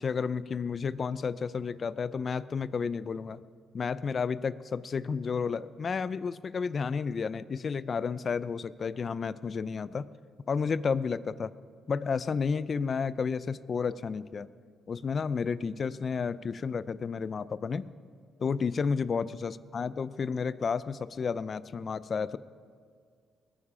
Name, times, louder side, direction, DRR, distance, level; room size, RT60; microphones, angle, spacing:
voice 1, 0.0-3.4 3.7-10.1 10.5-11.5 11.9-14.5 14.9-17.9 18.4-22.4, left 5 dB, 45° left, 17 dB, 0.5 m, -31 dB
21.0 x 9.9 x 5.0 m, 2.1 s
cardioid pair, 90°, 0 cm